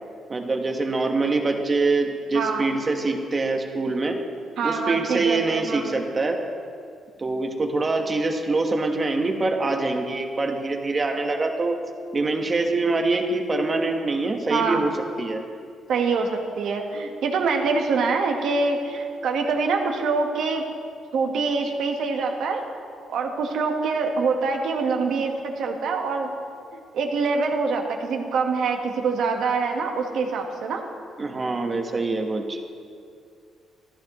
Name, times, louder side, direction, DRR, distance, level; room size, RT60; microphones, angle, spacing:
voice 1, 0.3-4.2 4.6-6.4 7.2-11.7 12.1-14.9 15.2-15.4 31.2-32.6, right 3 dB, 30° right, 3 dB, 1.2 m, -24 dB
voice 2, 2.3-2.7 4.6-5.9 14.5-14.8 15.9-20.6 21.1-22.6 23.1-26.3 26.7-30.8, right 4 dB, 75° right, 3 dB, 1.3 m, -25 dB
14.0 x 11.5 x 3.0 m, 2.3 s
cardioid pair, 90°, 0 cm